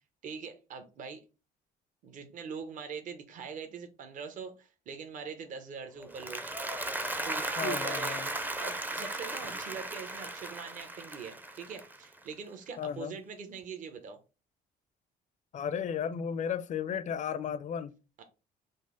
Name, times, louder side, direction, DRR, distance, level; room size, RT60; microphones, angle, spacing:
voice 1, 0.2-1.2 2.0-6.4 7.2-8.2 8.6-14.2 18.2-18.3, right 6 dB, 50° right, 0.8 m, -42 dB
Applause, 6.0-12.3, right 2 dB, 10° right, 0.5 m, -36 dB
voice 2, 7.6-8.3 12.8-13.1 15.5-17.9, left 8 dB, 45° left, 0.5 m, -34 dB
5.2 x 2.0 x 3.7 m
cardioid pair, 110°, 17 cm